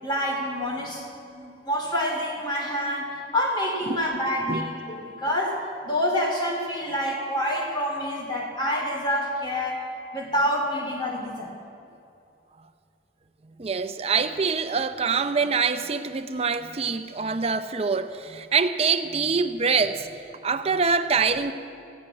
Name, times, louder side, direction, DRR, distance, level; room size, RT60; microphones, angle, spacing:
voice 1, 0.0-9.8 10.1-11.5, equal, 25° left, -1 dB, 2.6 m, -27 dB
voice 2, 13.6-21.5, right 5 dB, 35° right, 10 dB, 0.6 m, -25 dB
15.0 x 8.7 x 9.3 m, 2.6 s
head